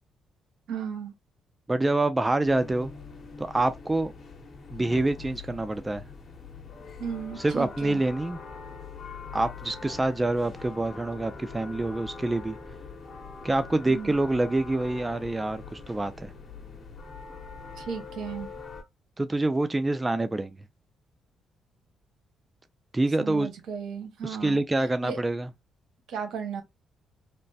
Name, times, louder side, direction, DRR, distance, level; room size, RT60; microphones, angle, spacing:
voice 1, 0.7-1.1 7.0-8.0 13.9-14.2 17.8-18.5 23.2-24.6 25.0-25.2 26.1-26.6, right 6 dB, 75° right, 0.9 m, -35 dB
voice 2, 1.7-2.9 3.4-4.1 4.7-6.0 7.4-8.4 9.3-12.6 13.4-16.3 19.2-20.6 22.9-23.5 24.2-25.5, right 2 dB, 15° right, 0.3 m, -26 dB
sound 1, 2.4-18.8, left 4 dB, 45° left, 0.9 m, -43 dB
3.0 x 2.0 x 2.6 m
cardioid pair, 90°, 0 cm